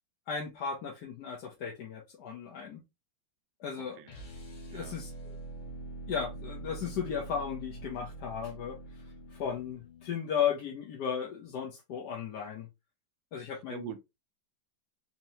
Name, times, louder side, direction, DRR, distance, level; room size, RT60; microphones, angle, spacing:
voice 1, 0.3-2.8 3.6-4.0 4.7-5.4 6.1-8.8 9.3-12.7 13.3-13.9, left 7 dB, 65° left, 1.2 m, -35 dB
voice 2, 3.7-4.1 4.7-5.0 13.7-14.0, right 9 dB, 70° right, 1.3 m, -43 dB
sound 1, 4.0-10.2, right 2 dB, 90° left, 2.0 m, -44 dB
4.3 x 2.9 x 2.7 m
omnidirectional pair, 2.2 m